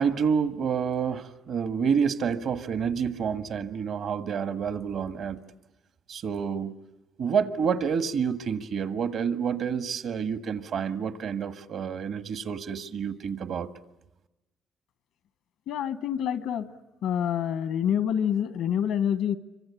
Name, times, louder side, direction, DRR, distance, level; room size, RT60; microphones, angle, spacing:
voice 1, 0.0-5.4 6.1-6.7 7.2-13.7, right 6 dB, 70° right, 11 dB, 1.7 m, -28 dB
voice 2, 15.7-16.7 17.0-19.4, left 9 dB, 85° left, 14 dB, 1.3 m, -27 dB
27.5 x 25.0 x 8.5 m, 0.99 s
cardioid pair, 90°, 0 cm